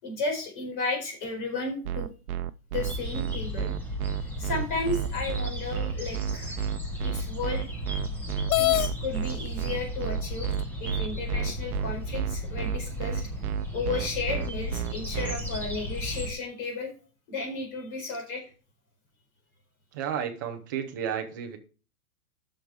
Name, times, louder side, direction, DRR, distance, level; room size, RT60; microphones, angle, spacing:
voice 1, 0.0-2.1 2.7-3.7 4.4-6.6 7.0-7.7 8.6-10.5 10.8-13.2 13.7-16.9 17.3-18.4, left 3 dB, 35° left, 4.6 m, -33 dB
sound 1, 1.8-15.4, right 11 dB, 70° right, 0.8 m, -31 dB
sound 2, 2.7-16.3, equal, 5° left, 1.3 m, -35 dB
sound 3, 8.5-8.9 9.9-10.0 10.6-10.7 11.3-12.0, left 17 dB, 70° left, 0.5 m, -25 dB
voice 2, 19.9-21.6, right 8 dB, 15° right, 0.5 m, -32 dB
10.5 x 6.6 x 4.7 m
supercardioid pair, 175°, 45 cm